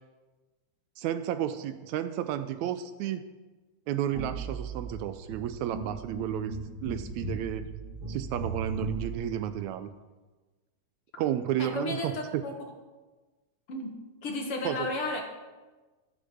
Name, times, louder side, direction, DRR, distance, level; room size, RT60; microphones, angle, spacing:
voice 1, 1.0-3.2 3.9-7.7 8.1-9.9 11.2-12.4 14.6-14.9, right 11 dB, 80° right, 11 dB, 1.8 m, -32 dB
sound 1, 4.1-9.1, right 3 dB, 50° right, 3.4 m, -37 dB
voice 2, 11.6-12.5 13.7-13.9 14.2-15.2, left 2 dB, 55° left, 2 dB, 2.2 m, -33 dB
14.0 x 7.4 x 6.9 m, 1.2 s
omnidirectional pair, 3.5 m